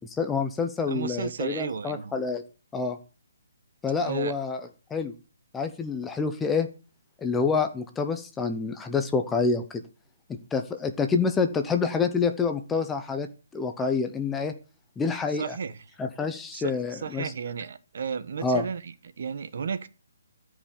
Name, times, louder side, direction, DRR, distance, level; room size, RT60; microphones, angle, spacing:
voice 1, 0.0-2.4 2.7-3.0 3.8-4.6 4.9-5.1 5.5-6.7 7.2-9.8 10.3-13.3 13.5-14.5 15.0-15.6 16.0-17.3 18.4-18.6, left 5 dB, 5° left, 0.7 m, -27 dB
voice 2, 0.9-2.2 4.0-4.3 15.3-15.8 16.5-19.9, right 6 dB, 45° right, 1.2 m, -33 dB
13.5 x 5.4 x 8.7 m
hypercardioid pair, 175°, 0 cm